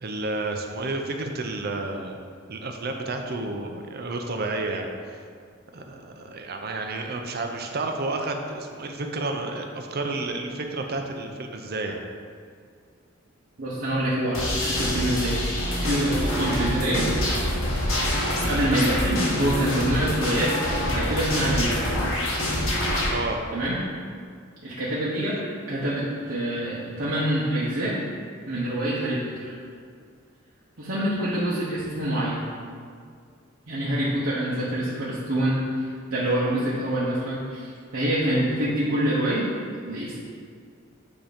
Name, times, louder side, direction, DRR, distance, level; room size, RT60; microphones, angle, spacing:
voice 1, 0.0-2.2 2.5-5.2 5.7-12.0 23.1-23.4 26.9-27.0, right 2 dB, 50° right, 3 dB, 0.6 m, -31 dB
voice 2, 13.6-17.1 18.4-21.8 23.5-23.8 24.6-28.0 28.5-29.4 30.8-32.4 33.7-39.5 39.8-40.2, right 1 dB, 70° right, -8 dB, 1.1 m, -26 dB
sound 1, 14.3-23.1, left 1 dB, 80° left, 1.6 m, -26 dB
8.7 x 2.9 x 5.1 m, 2.2 s
head